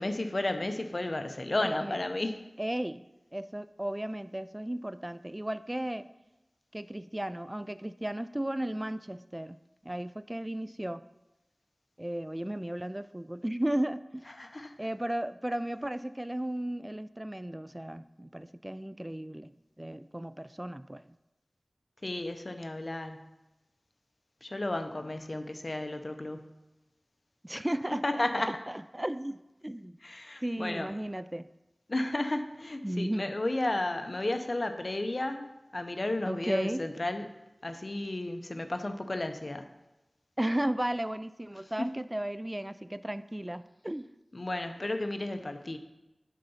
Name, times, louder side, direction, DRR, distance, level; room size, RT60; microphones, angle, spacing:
voice 1, 0.0-2.4 14.4-14.7 22.0-23.3 24.4-26.6 27.5-27.6 28.0-28.5 30.0-30.9 31.9-37.3 37.6-39.7 41.8-41.9 44.3-45.8, left 2 dB, 55° left, 7 dB, 0.8 m, -33 dB
voice 2, 1.6-2.0 2.6-3.0 3.3-6.1 6.7-9.6 9.8-11.0 12.0-14.2 14.8-19.5 19.8-21.0 27.4-30.0 30.4-31.5 32.8-33.3 36.3-36.8 40.4-44.1, right 1 dB, 20° right, 13 dB, 0.4 m, -35 dB
11.0 x 4.0 x 5.5 m, 0.97 s
wide cardioid pair, 45°, 0 cm